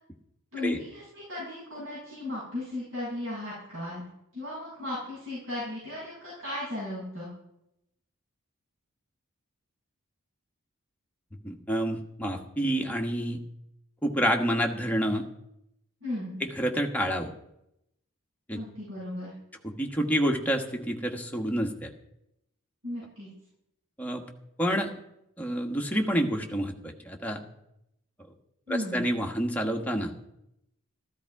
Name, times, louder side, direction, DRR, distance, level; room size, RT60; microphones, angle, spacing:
voice 1, 0.5-4.0 4.3-7.3 16.0-16.4 18.5-19.3 22.8-23.3 28.7-29.0, left 1 dB, 60° right, -8 dB, 7.4 m, -35 dB
voice 2, 11.4-13.4 14.0-15.2 16.4-17.3 18.5-18.6 19.6-21.9 24.0-24.3 24.6-24.9 25.4-27.4 28.7-30.1, equal, 5° left, 1 dB, 1.4 m, -28 dB
14.5 x 14.0 x 4.8 m, 0.83 s
head